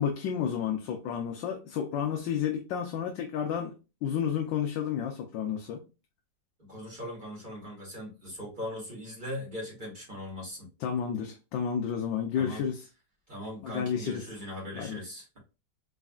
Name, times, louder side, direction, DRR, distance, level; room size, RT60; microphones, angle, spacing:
voice 1, 0.0-3.7 4.0-5.8 10.8-12.9 13.6-14.2 14.7-15.0, left 8 dB, 80° left, 1.3 m, -31 dB
voice 2, 6.6-10.7 12.4-12.6 13.3-15.4, left 1 dB, 25° right, 2.0 m, -40 dB
4.1 x 3.7 x 2.3 m
omnidirectional pair, 2.0 m